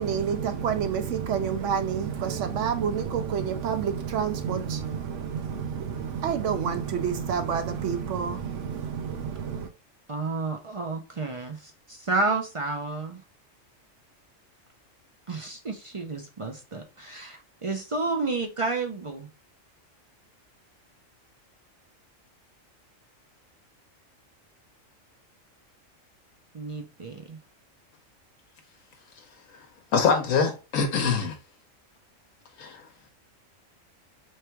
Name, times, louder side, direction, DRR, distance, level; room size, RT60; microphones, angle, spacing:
voice 1, 0.0-9.7, right 7 dB, 70° right, 0.9 m, -28 dB
voice 2, 10.1-13.2 15.3-19.3 26.5-27.4, right 3 dB, 45° right, 0.4 m, -31 dB
voice 3, 29.9-31.4 32.6-32.8, left 5 dB, 85° left, 1.2 m, -24 dB
3.4 x 3.3 x 4.4 m
omnidirectional pair, 1.3 m